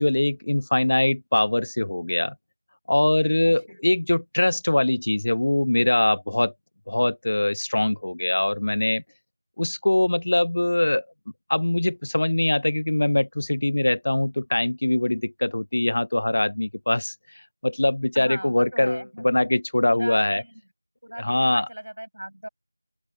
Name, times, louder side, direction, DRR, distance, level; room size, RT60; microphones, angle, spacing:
voice 1, 0.0-2.3 2.9-6.5 6.9-9.0 9.6-11.1 11.5-17.1 17.6-20.4 21.2-21.7, left 1 dB, 40° left, 0.4 m, -22 dB
voice 2, 3.4-3.8 18.1-19.2 19.9-20.6 21.0-22.5, right 1 dB, 70° right, 5.0 m, -37 dB
open air
figure-of-eight pair, 175°, 0 cm